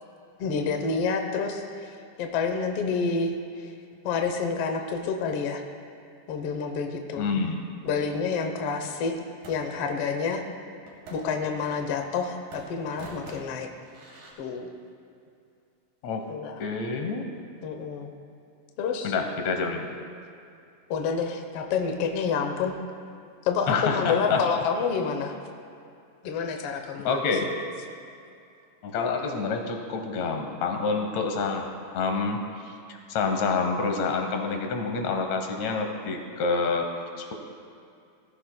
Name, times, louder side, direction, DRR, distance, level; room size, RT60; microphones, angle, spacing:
voice 1, 0.4-1.9 2.2-3.7 4.0-5.6 6.3-7.3 7.8-9.1 9.5-10.4 11.1-13.7 14.4-14.7 16.3-16.6 17.6-18.1 18.8-19.1 20.9-22.7 23.4-25.4 26.2-27.5, left 5 dB, 90° left, 4 dB, 1.2 m, -28 dB
voice 2, 7.2-7.6 16.0-16.3 16.6-17.3 19.0-19.9 23.7-24.4 27.0-27.5 28.8-37.3, left 4 dB, 65° left, 4 dB, 2.1 m, -28 dB
sound 1, 8.8-9.9 10.9-12.2 12.5-14.3, right 2 dB, 70° right, 3.7 m, -46 dB
19.0 x 14.5 x 2.2 m, 2.5 s
omnidirectional pair, 3.9 m